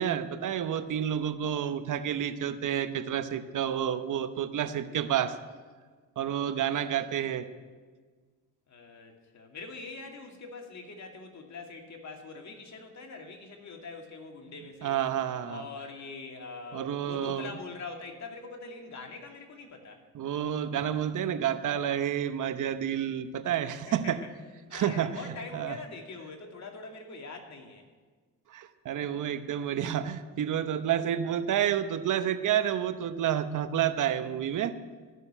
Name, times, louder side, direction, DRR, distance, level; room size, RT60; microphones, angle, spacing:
voice 1, 0.0-5.4 6.2-7.5 14.8-15.6 16.7-17.5 20.1-24.2 24.7-25.2 25.5-25.8 28.5-34.7, right 9 dB, 65° right, 11 dB, 0.9 m, -29 dB
voice 2, 8.7-15.0 15.4-20.0 23.9-24.3 24.7-27.8, left 4 dB, 55° left, 2 dB, 2.5 m, -43 dB
13.5 x 6.7 x 10.0 m, 1.5 s
supercardioid pair, 70°, 34 cm